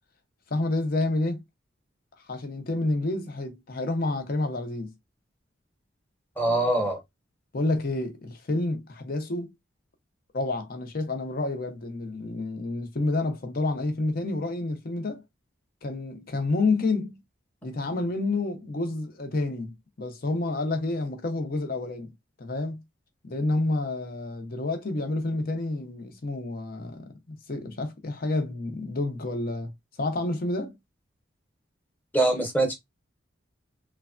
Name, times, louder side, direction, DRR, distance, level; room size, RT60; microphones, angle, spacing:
voice 1, 0.5-1.4 2.3-4.9 7.5-9.5 10.3-15.2 15.8-17.2 17.6-22.1 22.4-22.8 23.2-29.7 30.0-30.8, left 2 dB, 50° left, 0.6 m, -29 dB
voice 2, 6.4-7.0 32.1-32.7, right 2 dB, 10° left, 0.8 m, -23 dB
3.2 x 2.2 x 2.4 m
head